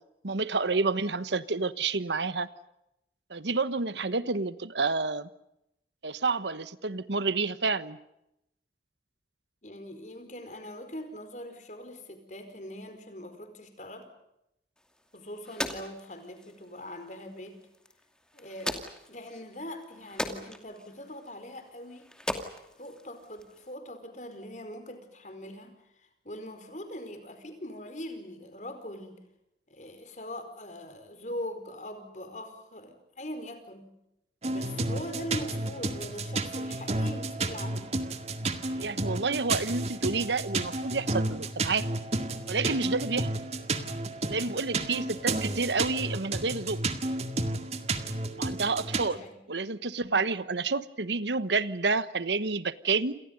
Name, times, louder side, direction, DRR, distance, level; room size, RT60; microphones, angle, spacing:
voice 1, 0.2-2.5 3.3-5.3 6.0-8.0 38.8-41.9 42.5-43.3 44.3-46.8 48.4-49.2 49.5-53.2, right 4 dB, 85° right, 15 dB, 1.2 m, -29 dB
voice 2, 9.6-14.1 15.1-17.6 18.3-18.7 19.1-22.1 22.8-29.2 29.7-33.9 34.4-37.8 49.0-49.4, left 1 dB, 45° left, 8 dB, 4.8 m, -42 dB
sound 1, 14.8-23.7, left 1 dB, 5° left, 2.5 m, -41 dB
sound 2, 34.4-49.1, right 2 dB, 35° right, 2.0 m, -32 dB
29.0 x 28.0 x 5.4 m, 0.84 s
head